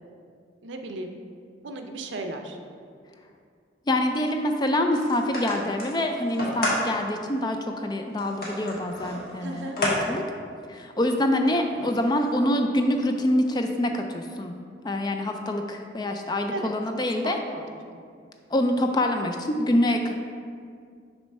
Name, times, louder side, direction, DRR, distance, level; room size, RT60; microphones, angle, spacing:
voice 1, 0.6-1.2 1.6-2.6 9.4-9.8 16.5-16.7 17.2-17.7 17.9-18.0, right 2 dB, 70° right, 5 dB, 0.5 m, -35 dB
voice 2, 3.9-10.2 10.7-14.5 14.8-17.4 18.5-20.1, left 1 dB, 20° left, 5 dB, 0.3 m, -25 dB
sound 1, 4.9-6.8 7.4-7.5 8.2-10.0 10.3-10.4 11.4-12.5, left 1 dB, 50° left, 1.5 m, -31 dB
6.6 x 3.0 x 5.3 m, 2.2 s
head